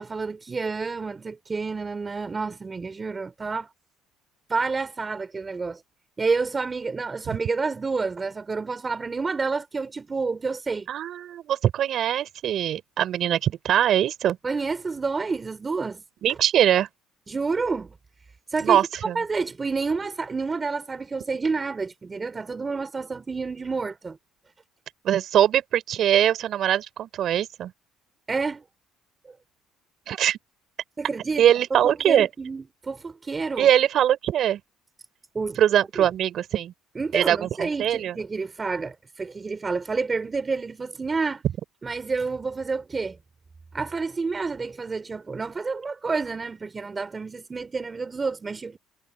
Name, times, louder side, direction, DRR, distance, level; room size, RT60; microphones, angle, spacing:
voice 1, 0.0-3.7 4.5-5.8 6.2-10.9 14.4-16.0 16.3-16.4 17.3-17.9 18.5-18.8 19.1-24.2 28.3-28.6 31.0-33.7 35.3-35.6 35.9-36.1 36.9-41.4 41.8-43.2 43.7-48.8, right 4 dB, 25° right, 3.3 m, -29 dB
voice 2, 10.9-14.4 16.2-16.9 18.6-19.2 25.0-27.7 30.1-30.4 31.4-32.3 33.6-34.6 35.6-36.7 37.1-38.2, right 10 dB, 60° right, 5.1 m, -22 dB
supercardioid pair, 90°, 0 cm